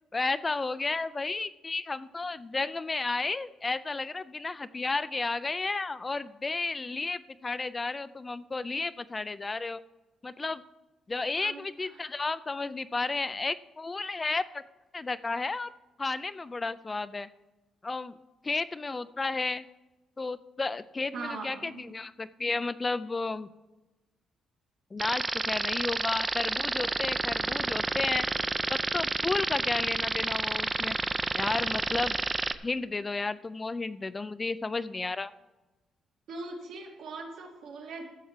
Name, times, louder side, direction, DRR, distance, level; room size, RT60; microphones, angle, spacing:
voice 1, 0.1-9.8 10.2-10.6 11.1-14.6 14.9-15.7 16.0-17.3 17.8-18.2 18.4-19.7 20.2-23.5 24.9-28.3 28.7-31.0 31.3-32.2 32.6-35.3, left 3 dB, 25° left, 14 dB, 0.4 m, -32 dB
voice 2, 11.3-11.6 11.9-12.1 21.1-21.9 36.3-38.0, right 3 dB, 75° right, 0 dB, 2.4 m, -40 dB
sound 1, 25.0-32.6, right 3 dB, 25° right, 0.5 m, -30 dB
13.0 x 4.5 x 7.4 m, 1.1 s
cardioid pair, 90°, 0 cm